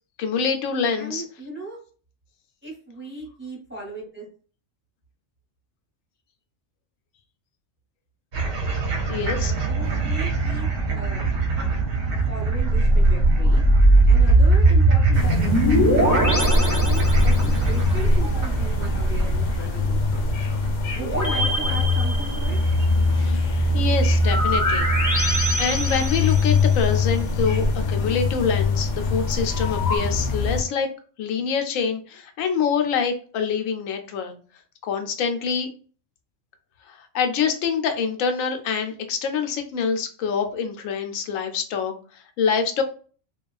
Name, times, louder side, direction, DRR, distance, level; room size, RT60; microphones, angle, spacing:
voice 1, 0.2-1.2 9.1-9.5 23.1-23.4 23.7-24.9 25.3-30.9 31.2-34.3 34.8-35.7 36.9-42.8, left 6 dB, 90° left, 6 dB, 1.0 m, -25 dB
voice 2, 1.0-1.8 2.6-4.3 9.7-10.7 10.9-11.2 12.3-13.6 14.1-16.3 16.8-20.3 20.9-22.6, right 2 dB, 10° right, -3 dB, 0.8 m, -37 dB
sound 1, 8.3-23.7, right 4 dB, 55° right, 0.8 m, -27 dB
sound 2, 12.6-17.7 21.0-22.8 24.2-26.8 29.5-30.0, right 1 dB, 25° left, 0.5 m, -20 dB
sound 3, 15.1-30.6, left 2 dB, 65° left, 0.8 m, -23 dB
2.9 x 2.3 x 2.3 m, 0.41 s
omnidirectional pair, 1.3 m